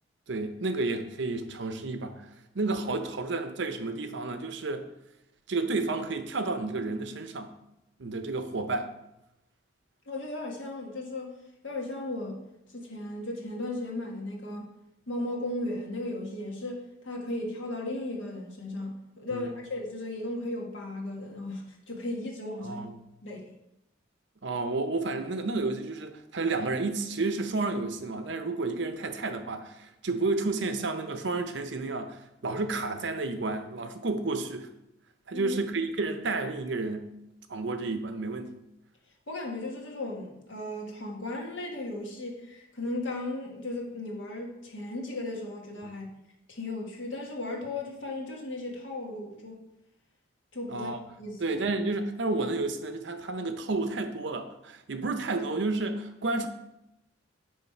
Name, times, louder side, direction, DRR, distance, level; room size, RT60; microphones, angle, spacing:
voice 1, 0.3-2.3 2.5-4.9 5.5-7.5 8.0-8.9 19.3-19.5 22.6-22.9 24.4-34.7 35.3-37.1 37.5-38.5 45.8-45.9 50.7-51.0 51.4-56.5, right 3 dB, 65° right, 8 dB, 0.7 m, -31 dB
voice 2, 10.1-11.3 11.6-12.4 12.7-14.7 15.1-22.9 23.2-23.4 35.3-35.6 39.3-46.1 46.5-49.6 50.5-50.9 51.2-51.4, left 2 dB, 80° left, 0 dB, 1.5 m, -36 dB
9.5 x 3.2 x 4.4 m, 0.88 s
head